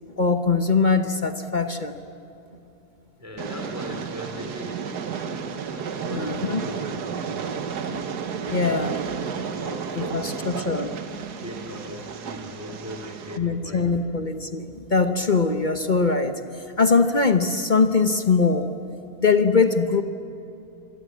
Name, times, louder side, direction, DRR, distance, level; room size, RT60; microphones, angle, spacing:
voice 1, 0.2-1.9 6.1-6.6 7.9-8.0 8.5-9.0 10.0-10.9 13.4-18.7 19.2-20.0, left 4 dB, 35° left, 8 dB, 1.0 m, -22 dB
voice 2, 3.2-5.2 5.7-7.7 8.4-9.0 9.3-10.3 11.4-14.0, left 1 dB, 10° right, 2 dB, 3.0 m, -39 dB
Train, 3.4-13.4, right 6 dB, 80° right, 1.8 m, -32 dB
26.5 x 22.0 x 8.5 m, 2.9 s
omnidirectional pair, 1.7 m